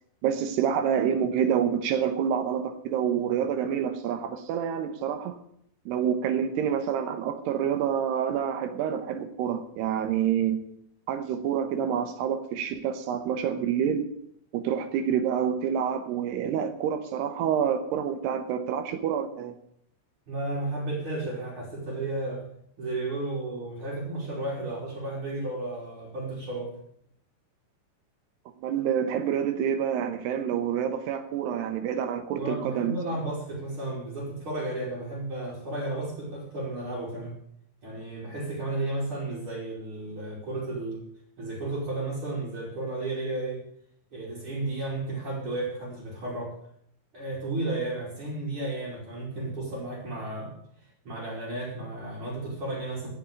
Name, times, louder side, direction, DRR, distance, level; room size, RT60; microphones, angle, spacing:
voice 1, 0.2-5.4 5.9-10.6 11.1-14.1 14.5-19.6 28.6-33.0, right 8 dB, 75° right, 2.7 m, -27 dB
voice 2, 20.3-22.4 22.8-26.7 32.4-37.4 37.8-41.0 41.4-43.6 44.1-46.5 47.1-50.5 51.0-53.1, right 2 dB, 30° right, 3.8 m, -33 dB
15.0 x 6.6 x 8.6 m
omnidirectional pair, 5.6 m